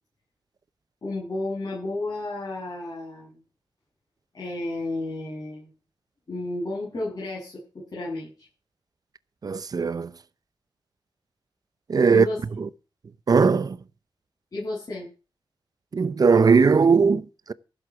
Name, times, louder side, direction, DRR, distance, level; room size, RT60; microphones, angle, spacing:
voice 1, 1.0-3.4 4.3-5.7 6.3-8.5 12.1-12.4 14.5-15.1, left 2 dB, 45° left, 8.0 m, -32 dB
voice 2, 9.4-10.1 11.9-12.3 12.6-12.7 13.3-13.8 15.9-17.5, right 5 dB, 45° right, 0.7 m, -19 dB
15.0 x 7.9 x 5.9 m
wide cardioid pair, 150°, 9 cm